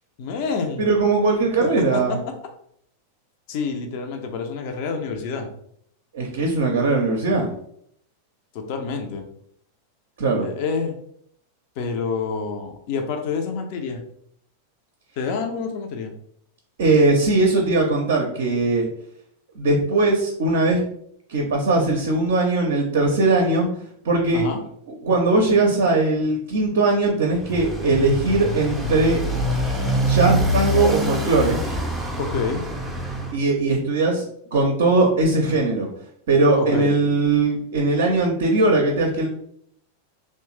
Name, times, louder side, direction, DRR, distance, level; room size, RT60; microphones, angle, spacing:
voice 1, 0.2-0.9 1.6-2.3 3.5-5.5 8.5-9.2 10.4-10.9 11.8-14.0 15.2-16.1 24.3-24.6 32.2-32.6 36.6-37.0, left 5 dB, 45° left, 4 dB, 0.5 m, -27 dB
voice 2, 0.8-2.2 6.1-7.5 10.2-10.5 16.8-18.9 19.6-20.8 21.3-23.7 24.0-24.4 25.0-29.2 30.0-31.6 33.3-34.2 34.5-35.9 36.3-39.3, right 3 dB, 60° right, 1 dB, 0.5 m, -20 dB
Motorcycle, 27.3-33.4, equal, 5° right, 0.5 m, -25 dB
3.0 x 2.1 x 3.0 m, 0.67 s
figure-of-eight pair, 90°, 0 cm